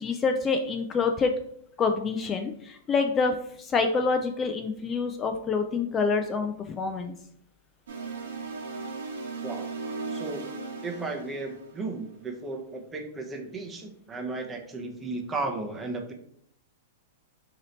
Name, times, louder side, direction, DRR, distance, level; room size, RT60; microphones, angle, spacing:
voice 1, 0.0-1.3 1.8-7.1, left 4 dB, 25° left, 5 dB, 0.3 m, -27 dB
sound 1, 7.9-12.2, right 4 dB, 80° right, 0.9 m, -37 dB
voice 2, 10.1-10.5 10.8-16.1, right 3 dB, 15° right, 3 dB, 0.7 m, -35 dB
3.1 x 2.8 x 3.9 m, 0.68 s
hypercardioid pair, 130°, 0 cm